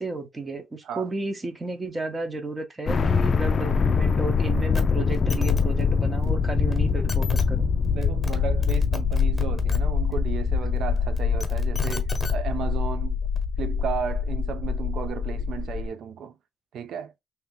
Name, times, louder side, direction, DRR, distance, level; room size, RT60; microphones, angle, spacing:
voice 1, 0.0-7.7, right 3 dB, 25° right, 1.0 m, -33 dB
sound 1, 2.9-15.9, left 5 dB, 40° left, 0.4 m, -24 dB
sound 2, 4.7-4.8 5.1-5.6 6.7-6.8 7.1-7.4 8.0-8.4 8.6-9.8 11.2-12.3 13.4-13.5, left 3 dB, 15° left, 1.2 m, -33 dB
voice 2, 7.9-13.2 13.6-16.4 16.7-17.1, right 7 dB, 70° right, 0.5 m, -34 dB
2.9 x 2.8 x 3.6 m
cardioid pair, 90°, 0 cm